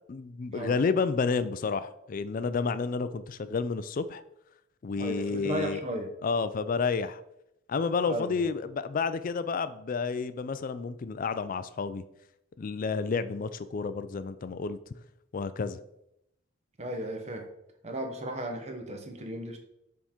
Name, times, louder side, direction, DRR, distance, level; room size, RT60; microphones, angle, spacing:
voice 1, 0.1-4.2 4.8-5.8 6.2-7.2 7.7-12.0 12.6-14.8 15.3-15.8, left 5 dB, 40° left, 13 dB, 0.4 m, -30 dB
voice 2, 5.0-6.1 8.1-8.5 16.8-17.5 17.8-19.6, right 1 dB, 35° right, 4 dB, 0.9 m, -35 dB
7.0 x 3.7 x 4.3 m, 0.80 s
head